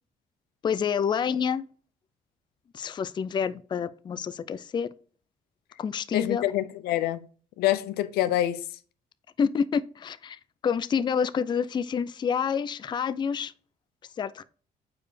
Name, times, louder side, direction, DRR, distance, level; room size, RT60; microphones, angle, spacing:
voice 1, 0.6-1.7 2.7-4.9 5.8-6.4 9.4-13.5 14.2-14.4, left 7 dB, 30° left, 0.3 m, -28 dB
voice 2, 6.1-7.2 7.6-8.6, left 13 dB, 90° left, 0.5 m, -26 dB
6.7 x 4.7 x 3.2 m
cardioid pair, 95°, 16 cm